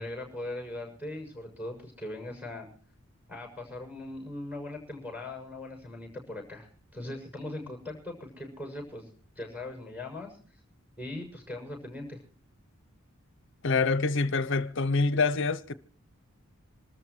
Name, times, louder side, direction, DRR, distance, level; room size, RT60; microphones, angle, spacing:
voice 1, 0.0-2.7 3.3-9.1 9.3-10.4 11.0-12.2, left 2 dB, 5° right, 6.9 m, -40 dB
voice 2, 13.6-15.7, left 4 dB, 60° left, 0.7 m, -26 dB
26.5 x 13.5 x 3.1 m
head